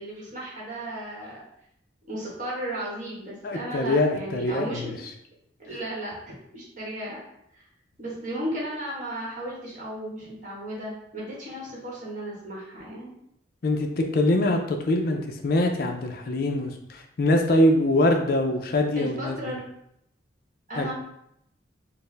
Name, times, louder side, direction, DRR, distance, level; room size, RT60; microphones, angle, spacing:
voice 1, 0.0-1.4 2.1-4.9 5.6-7.2 7.5-7.6 8.0-13.1 18.9-19.6 20.7-20.9, right 1 dB, 45° right, -5 dB, 1.3 m, -35 dB
voice 2, 3.4-5.0 13.6-19.3 20.8-20.9, left 1 dB, 50° left, 4 dB, 0.4 m, -23 dB
4.3 x 2.0 x 3.3 m, 0.75 s
head